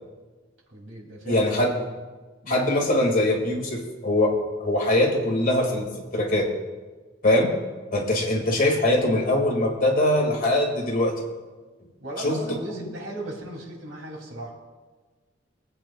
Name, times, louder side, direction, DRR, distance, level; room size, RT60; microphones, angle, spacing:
voice 1, 0.7-1.8 2.4-2.7 8.4-8.6 12.0-14.5, right 1 dB, 70° right, 0 dB, 2.7 m, -37 dB
voice 2, 1.2-1.7 2.5-4.3 4.6-6.5 7.2-7.5 7.9-11.1 12.2-12.4, left 1 dB, 45° left, 0 dB, 2.0 m, -22 dB
21.5 x 8.6 x 2.3 m, 1.3 s
head